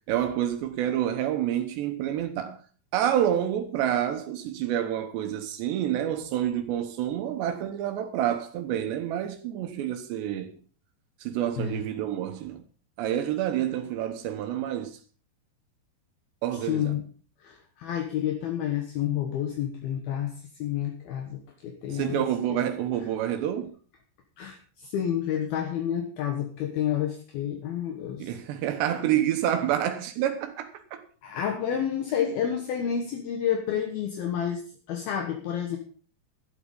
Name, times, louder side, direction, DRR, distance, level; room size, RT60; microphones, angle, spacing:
voice 1, 0.1-2.6 2.9-10.5 11.2-12.6 13.0-15.0 16.4-16.9 21.9-23.7 28.2-31.0, right 11 dB, 80° right, 3.3 m, -28 dB
voice 2, 16.5-17.0 17.4-20.3 20.6-22.2 22.5-22.6 24.4-28.4 31.2-34.6 34.9-35.8, left 9 dB, 65° left, 3.1 m, -29 dB
12.0 x 11.5 x 5.4 m
omnidirectional pair, 4.9 m